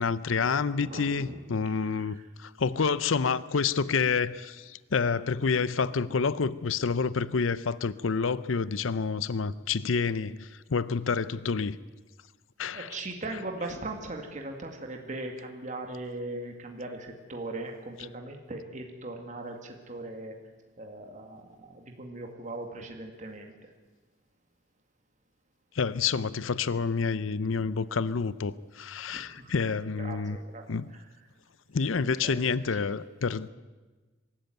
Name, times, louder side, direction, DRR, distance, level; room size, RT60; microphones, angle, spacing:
voice 1, 0.0-11.8 12.6-13.0 25.7-30.4 30.7-30.9 31.7-33.5, left 5 dB, 85° left, 0.6 m, -28 dB
voice 2, 0.7-1.4 1.7-2.2 12.7-20.4 20.8-23.5 29.1-29.6 30.0-30.6 30.9-31.1 32.2-32.4 32.7-32.9, right 2 dB, 40° right, 2.2 m, -39 dB
23.5 x 13.5 x 9.3 m
head